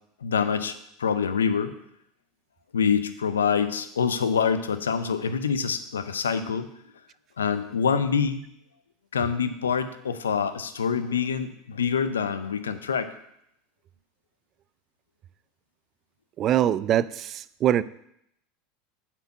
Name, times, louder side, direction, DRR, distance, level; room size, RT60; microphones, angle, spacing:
voice 1, 0.2-1.7 2.7-6.7 7.4-8.4 9.1-13.1, left 6 dB, 85° left, 11 dB, 0.6 m, -26 dB
voice 2, 16.4-17.8, right 11 dB, 40° right, 18 dB, 0.3 m, -23 dB
7.9 x 4.5 x 5.9 m, 0.76 s
hypercardioid pair, 85°, 0 cm